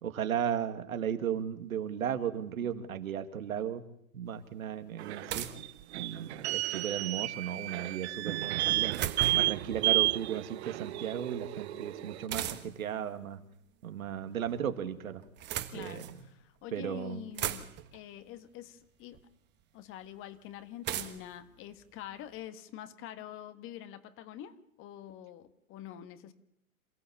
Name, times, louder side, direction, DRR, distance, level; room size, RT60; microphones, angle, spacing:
voice 1, 0.0-3.8 4.1-5.5 5.9-9.0 9.3-13.4 13.8-15.2 15.7-16.3 16.7-17.3, right 9 dB, 70° right, 8 dB, 2.4 m, -35 dB
sound 1, 4.3-4.4 5.3-6.4 8.4-9.6 12.3-12.9 14.0-14.6 15.2-16.2 16.8-16.9 17.1-18.0 19.1-19.2 20.8-22.4, right 11 dB, 25° right, 1.5 m, -38 dB
sound 2, 5.0-12.3, right 17 dB, 50° right, 1.0 m, -32 dB
voice 2, 15.7-19.2 19.7-26.3, left 11 dB, 30° left, 11 dB, 1.7 m, -46 dB
28.0 x 15.5 x 7.3 m, 0.75 s
hypercardioid pair, 120°, 42 cm